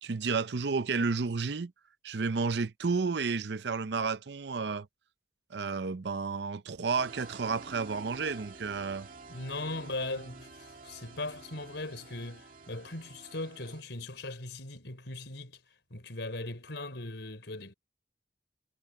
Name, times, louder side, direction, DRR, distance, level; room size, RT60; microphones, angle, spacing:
voice 1, 0.0-1.7 2.0-4.9 5.5-9.1, right 4 dB, 65° right, 0.6 m, -31 dB
sound 1, 7.0-13.8, right 3 dB, 45° right, 2.1 m, -49 dB
voice 2, 9.3-15.6 15.9-17.7, left 2 dB, 75° left, 4.0 m, -39 dB
head